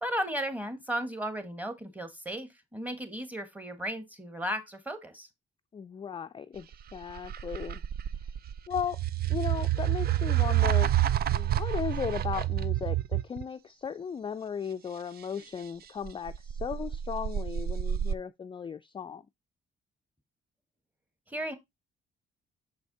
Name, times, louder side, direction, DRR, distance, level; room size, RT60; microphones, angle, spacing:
voice 1, 0.0-5.3 21.3-21.5, equal, 10° right, 1.5 m, -35 dB
voice 2, 5.7-7.8 8.7-9.0 9.3-10.9 11.3-19.3, left 7 dB, 25° left, 0.3 m, -36 dB
sound 1, 6.7-13.4 16.0-18.1, right 12 dB, 50° right, 0.4 m, -28 dB
6.3 x 4.7 x 3.9 m
cardioid pair, 90°, 20 cm